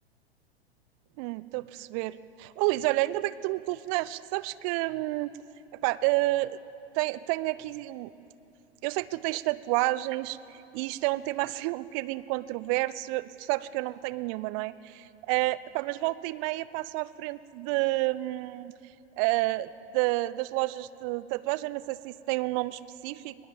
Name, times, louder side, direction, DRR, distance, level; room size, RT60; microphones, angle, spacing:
voice 1, 1.2-5.3 5.8-6.6 6.9-8.1 8.8-10.4 10.7-18.7 19.2-23.4, right 19 dB, 30° right, 18 dB, 0.6 m, -30 dB
21.0 x 20.0 x 7.3 m, 2.8 s
figure-of-eight pair, 95°, 32 cm